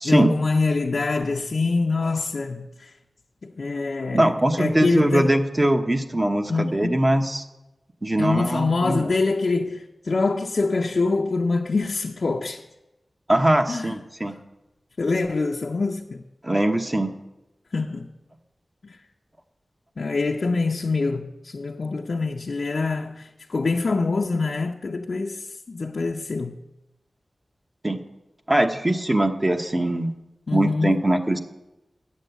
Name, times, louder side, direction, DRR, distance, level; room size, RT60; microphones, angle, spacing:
voice 1, 0.0-2.9 3.4-5.4 6.5-7.0 8.2-12.6 13.7-14.0 15.0-16.2 17.7-18.1 18.8-19.0 20.0-26.6 30.5-31.0, left 3 dB, 70° left, 0.6 m, -25 dB
voice 2, 4.1-7.4 8.0-9.1 13.3-14.3 16.4-17.1 27.8-28.0 28.5-30.1 30.5-31.4, right 1 dB, 25° right, 0.9 m, -21 dB
8.5 x 7.4 x 8.0 m
wide cardioid pair, 75°, 0 cm